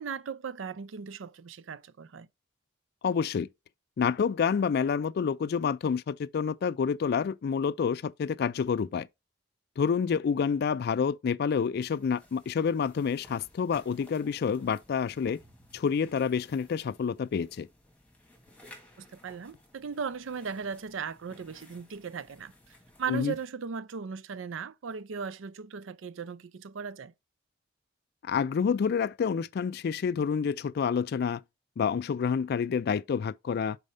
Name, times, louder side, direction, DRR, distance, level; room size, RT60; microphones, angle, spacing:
voice 1, 0.0-2.3 19.0-27.1, right 6 dB, 85° right, 0.5 m, -37 dB
voice 2, 3.0-3.5 4.0-9.1 9.8-15.4 15.7-17.7 23.1-23.3 28.2-31.4 31.8-33.8, left 6 dB, 55° left, 0.3 m, -28 dB
sound 1, 11.8-23.5, left 1 dB, 5° left, 1.6 m, -57 dB
5.4 x 4.1 x 4.9 m
head